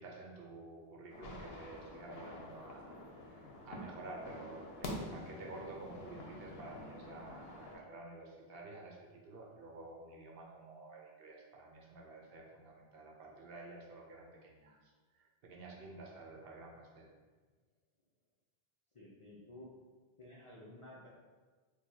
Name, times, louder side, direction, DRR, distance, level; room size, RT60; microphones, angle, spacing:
voice 1, 0.0-2.9 3.2-17.1, right 2 dB, 70° right, -1 dB, 0.8 m, -51 dB
sound 1, 1.1-7.8, left 1 dB, 75° left, 0.8 m, -47 dB
voice 2, 18.9-19.7 20.2-21.1, left 1 dB, 45° left, -6 dB, 0.4 m, -53 dB
4.5 x 2.2 x 2.7 m, 1.4 s
omnidirectional pair, 1.1 m